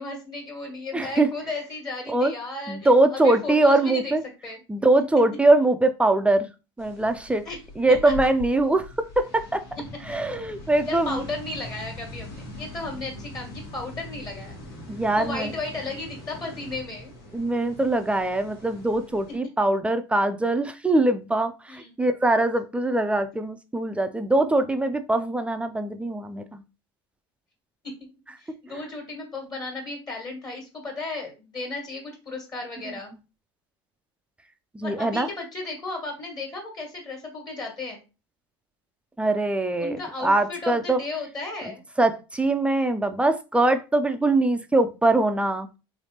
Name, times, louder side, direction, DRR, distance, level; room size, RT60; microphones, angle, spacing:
voice 1, 0.0-4.2 4.4-4.6 7.4-7.6 10.8-14.6 15.1-17.1 21.7-22.0 27.8-28.1 28.4-33.1 34.8-38.0 39.8-41.8, left 3 dB, 30° left, 1 dB, 1.6 m, -34 dB
voice 2, 0.9-1.3 2.1-2.3 2.7-4.2 4.7-6.5 6.8-7.4 7.8-9.6 10.1-11.2 14.9-15.5 17.3-26.6 34.7-35.3 39.2-41.0 42.0-45.7, right 2 dB, 10° right, 7 dB, 0.4 m, -22 dB
sound 1, 6.8-19.4, left 2 dB, 80° left, 1.5 m, -41 dB
3.3 x 3.1 x 2.8 m, 0.30 s
hypercardioid pair, 85°, 13 cm